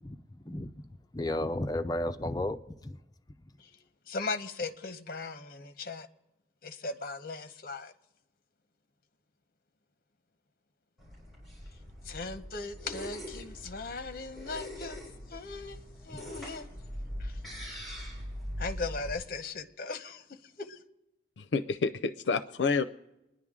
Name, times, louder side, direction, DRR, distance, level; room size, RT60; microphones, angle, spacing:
voice 1, 0.0-3.0 16.1-16.4, left 1 dB, 20° left, 0.5 m, -34 dB
voice 2, 4.1-6.1 6.6-7.9 12.1-15.0 15.3-15.8 16.0-16.7 17.2-17.3 18.6-20.2 20.6-20.8, left 3 dB, 55° left, 0.9 m, -38 dB
sound 1, 11.0-19.1, equal, ahead, 6.5 m, -42 dB
voice 3, 21.4-22.8, left 4 dB, 85° left, 0.5 m, -29 dB
25.0 x 10.5 x 3.7 m
head